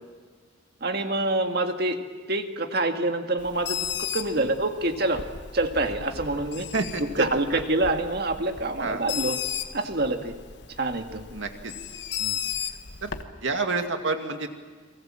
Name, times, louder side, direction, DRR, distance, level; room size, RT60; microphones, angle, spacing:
voice 1, 0.8-2.0 2.3-5.2 5.5-6.7 7.2-9.4 9.7-10.3 10.8-11.2 12.2-12.4, right 2 dB, 55° right, 5 dB, 1.9 m, -26 dB
Bird, 3.4-13.2, left 8 dB, 60° left, 1.4 m, -35 dB
voice 2, 6.7-7.6 8.8-9.0 11.3-11.7 13.0-13.1 13.4-14.5, right 3 dB, 70° right, 5 dB, 2.3 m, -29 dB
30.0 x 23.0 x 7.6 m, 1.4 s
head